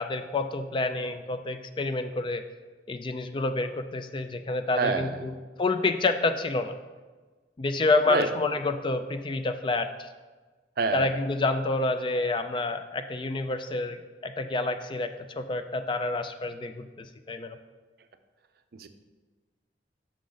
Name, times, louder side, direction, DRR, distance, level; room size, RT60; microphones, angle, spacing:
voice 1, 0.0-2.4 2.9-5.3 5.6-6.7 7.6-10.1 10.9-15.1 15.4-17.6, left 3 dB, 30° left, 8 dB, 0.3 m, -28 dB
voice 2, 4.8-5.2 8.1-8.3 10.8-11.1 18.7-18.9, right 4 dB, 60° right, 9 dB, 0.5 m, -27 dB
6.3 x 6.2 x 3.9 m, 1.3 s
head